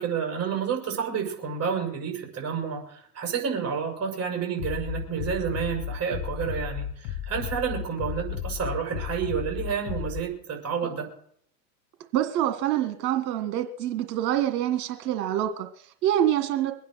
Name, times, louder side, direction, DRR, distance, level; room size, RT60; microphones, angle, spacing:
voice 1, 0.0-11.1, right 7 dB, 30° right, 2 dB, 6.3 m, -30 dB
Bass drum, 4.6-10.2, left 10 dB, 60° left, 2.9 m, -34 dB
voice 2, 12.1-16.7, right 11 dB, 65° right, 7 dB, 1.9 m, -26 dB
23.0 x 9.3 x 6.4 m, 0.66 s
hypercardioid pair, 105°, 48 cm